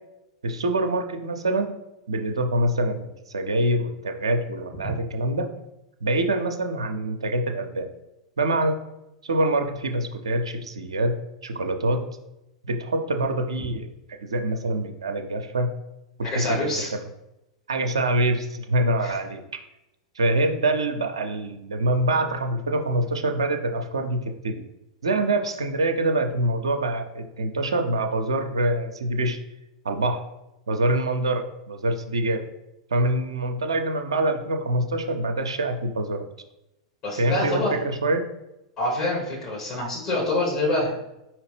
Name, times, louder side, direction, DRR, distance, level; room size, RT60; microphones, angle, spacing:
voice 1, 0.4-1.7 2.1-5.5 6.0-7.9 8.4-8.8 9.2-11.1 11.4-12.0 12.6-13.9 14.2-15.7 16.2-16.8 17.7-19.4 20.2-24.6 25.0-29.4 29.8-30.2 30.7-32.4 32.9-36.3 37.2-38.2, right 1 dB, 75° right, 5 dB, 0.5 m, -25 dB
voice 2, 16.2-16.9 19.0-19.2 37.0-37.7 38.8-41.0, left 1 dB, 45° left, -5 dB, 1.5 m, -26 dB
4.9 x 2.9 x 3.3 m, 0.91 s
figure-of-eight pair, 95°, 3 cm